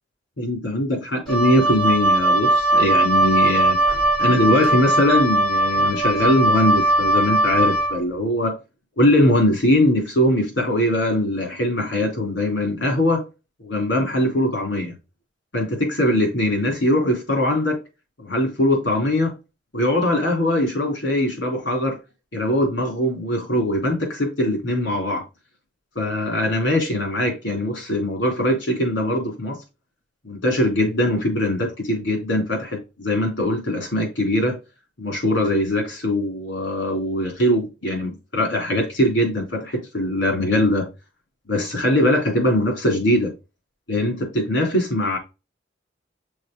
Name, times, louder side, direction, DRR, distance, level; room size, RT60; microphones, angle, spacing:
voice 1, 0.4-3.8 4.2-8.6 9.0-13.2 13.6-15.0 15.5-17.8 18.2-19.3 19.7-22.0 22.3-25.3 26.0-29.6 30.2-34.6 35.0-40.9 41.5-43.3 43.9-45.2, left 1 dB, 75° left, 3.7 m, -21 dB
Wind instrument woodwind instrument, 1.3-8.0, right 1 dB, ahead, 3.2 m, -19 dB
6.3 x 4.4 x 3.9 m
head